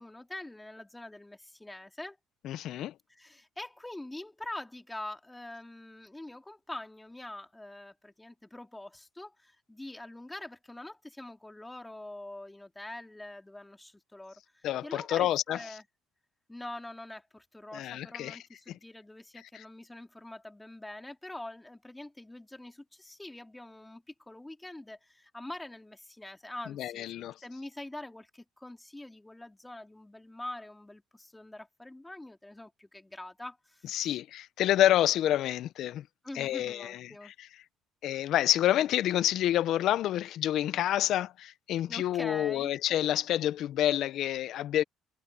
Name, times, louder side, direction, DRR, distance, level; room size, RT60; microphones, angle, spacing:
voice 1, 0.0-2.2 3.1-15.8 16.5-34.2 36.2-37.3 41.9-42.7, left 1 dB, 10° left, 2.9 m, -44 dB
voice 2, 2.4-2.9 14.6-15.6 17.7-18.4 18.7-18.8 19.5-19.6 26.8-27.3 33.9-36.0 36.3-37.5 38.0-44.8, left 12 dB, 65° left, 1.0 m, -28 dB
supercardioid pair, 80°, 0 cm